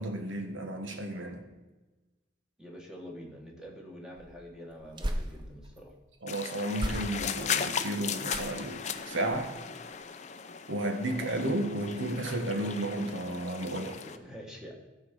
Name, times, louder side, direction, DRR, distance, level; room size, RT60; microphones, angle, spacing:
voice 1, 0.0-1.4 6.2-9.5 10.7-14.0, right 1 dB, 80° right, 4 dB, 1.4 m, -33 dB
voice 2, 2.6-5.9 14.0-14.8, equal, 5° right, -1 dB, 1.4 m, -46 dB
sound 1, 4.1-5.8 6.7-7.5 8.2-8.8 9.2-9.6 9.9-10.0, equal, 25° right, 0.7 m, -37 dB
sound 2, 6.3-14.2, left 7 dB, 35° left, 0.5 m, -37 dB
13.0 x 4.6 x 6.7 m, 1.2 s
head